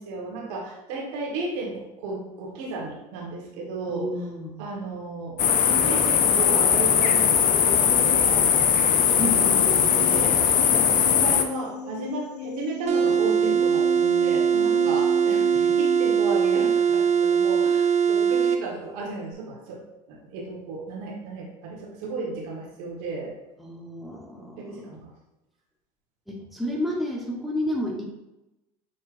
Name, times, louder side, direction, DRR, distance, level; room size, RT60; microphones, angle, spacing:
voice 1, 0.0-4.1 4.6-23.3 24.4-25.1, right 3 dB, 70° right, -2 dB, 1.4 m, -34 dB
voice 2, 3.9-4.6 9.1-10.1 13.4-13.5 15.5-15.8 23.6-24.8 26.3-28.0, left 1 dB, ahead, -2 dB, 0.9 m, -31 dB
sound 1, 5.4-11.4, left 8 dB, 40° left, 0.5 m, -20 dB
sound 2, 9.4-16.2, left 3 dB, 90° left, 0.4 m, -36 dB
sound 3, 12.9-18.6, right 7 dB, 35° right, 0.5 m, -21 dB
6.4 x 3.1 x 2.5 m, 0.95 s
hypercardioid pair, 75°, 20 cm